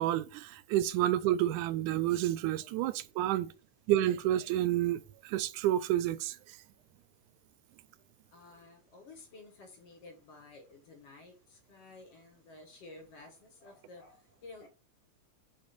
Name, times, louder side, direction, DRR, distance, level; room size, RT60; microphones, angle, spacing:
voice 1, 0.0-3.5 3.9-6.4, right 13 dB, 90° right, 2.1 m, -29 dB
voice 2, 8.3-14.7, left 3 dB, 55° left, 2.6 m, -53 dB
5.3 x 5.3 x 5.6 m
omnidirectional pair, 3.5 m